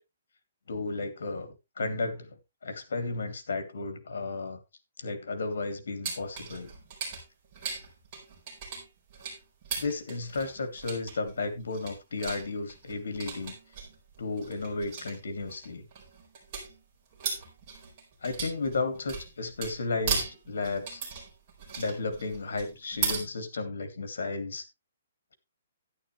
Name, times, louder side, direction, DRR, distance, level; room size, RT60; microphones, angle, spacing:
voice 1, 0.7-4.6 5.0-6.7 9.8-13.6 14.2-15.9 18.2-21.0 21.8-24.6, left 3 dB, 75° left, 2.4 m, -33 dB
sound 1, 6.0-23.2, right 5 dB, 25° right, 4.5 m, -38 dB
11.0 x 10.5 x 3.2 m
hypercardioid pair, 175°, 0 cm